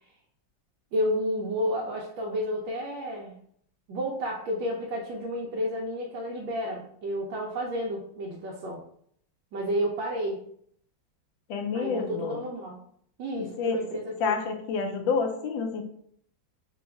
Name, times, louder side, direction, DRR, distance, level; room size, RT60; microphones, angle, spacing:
voice 1, 0.9-3.4 3.9-8.8 9.5-10.4 11.7-12.8 13.2-14.3, equal, 80° right, -2 dB, 1.3 m, -31 dB
voice 2, 11.5-12.4 13.4-13.8 14.2-15.8, left 5 dB, 80° left, 4 dB, 1.3 m, -29 dB
4.1 x 2.2 x 3.4 m, 0.66 s
omnidirectional pair, 2.1 m